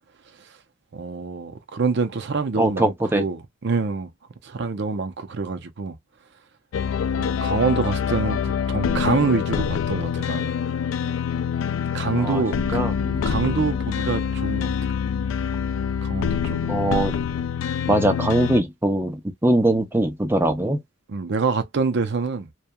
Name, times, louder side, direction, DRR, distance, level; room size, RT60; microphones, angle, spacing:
voice 1, 0.9-4.1 4.4-5.9 7.2-10.6 11.9-12.8 13.2-14.9 16.0-16.7 21.1-22.5, right 4 dB, 60° right, 0.6 m, -26 dB
voice 2, 2.6-3.2 12.1-12.4 12.7-13.7 16.7-17.2 17.9-20.8, right 1 dB, 10° right, 0.5 m, -22 dB
sound 1, 6.7-18.6, left 7 dB, 90° left, 0.3 m, -25 dB
2.9 x 2.3 x 2.2 m
head